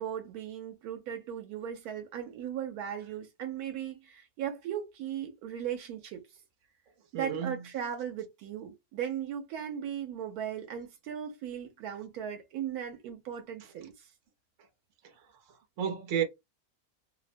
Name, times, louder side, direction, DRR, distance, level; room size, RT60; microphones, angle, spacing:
voice 1, 0.0-6.2 7.1-14.1, right 9 dB, 90° right, 1.1 m, -37 dB
voice 2, 7.1-7.6 15.8-16.2, right 8 dB, 60° right, 1.0 m, -31 dB
2.8 x 2.0 x 2.5 m
omnidirectional pair, 1.6 m